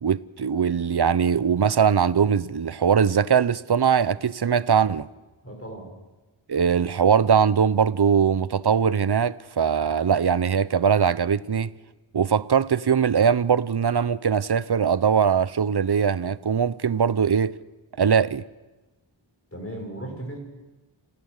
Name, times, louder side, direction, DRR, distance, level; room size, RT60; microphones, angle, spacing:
voice 1, 0.0-5.1 6.5-11.7 12.1-17.6 18.0-18.4, right 7 dB, 55° right, 0.7 m, -21 dB
voice 2, 5.4-5.9 19.5-20.4, right 1 dB, 30° left, 6.7 m, -36 dB
27.5 x 16.5 x 6.6 m
wide cardioid pair, 45°, 48 cm